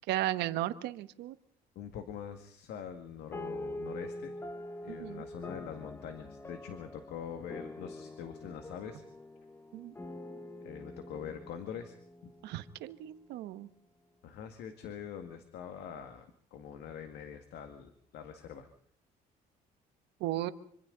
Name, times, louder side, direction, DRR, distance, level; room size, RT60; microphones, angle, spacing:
voice 1, 0.1-1.3 4.9-5.2 9.7-9.9 12.4-13.7 20.2-20.5, right 14 dB, 85° right, 12 dB, 1.2 m, -35 dB
voice 2, 1.8-4.4 4.8-9.0 10.6-12.0 14.2-18.7, left 8 dB, 80° left, 7 dB, 2.0 m, -44 dB
sound 1, 3.3-13.1, left 1 dB, 15° left, 1.1 m, -45 dB
25.5 x 25.5 x 4.0 m, 0.62 s
cardioid pair, 110°, 17 cm